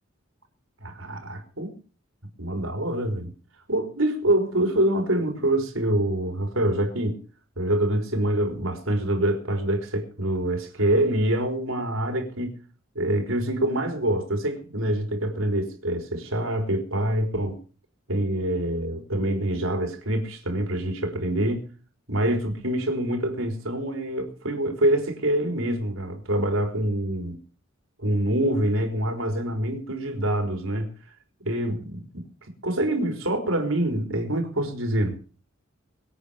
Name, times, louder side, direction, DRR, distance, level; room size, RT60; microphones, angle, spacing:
voice 1, 0.8-1.7 2.4-3.3 3.7-7.2 7.6-12.6 12.9-17.6 18.1-21.7 22.1-27.4 28.0-30.9 31.4-32.2 32.6-35.2, right 1 dB, 85° right, 4.1 m, -25 dB
24.0 x 8.8 x 5.1 m
head